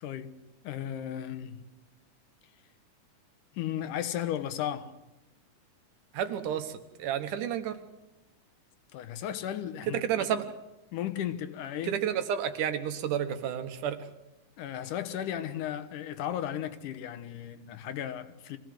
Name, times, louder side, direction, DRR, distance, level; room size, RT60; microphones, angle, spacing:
voice 1, 0.0-0.3 0.6-1.6 3.5-4.9 8.9-10.3 10.9-12.0 14.6-18.6, left 10 dB, 80° left, 2.6 m, -35 dB
voice 2, 6.1-7.8 9.9-10.4 11.8-14.0, right 9 dB, 80° right, 2.8 m, -31 dB
24.0 x 17.0 x 7.8 m
omnidirectional pair, 3.6 m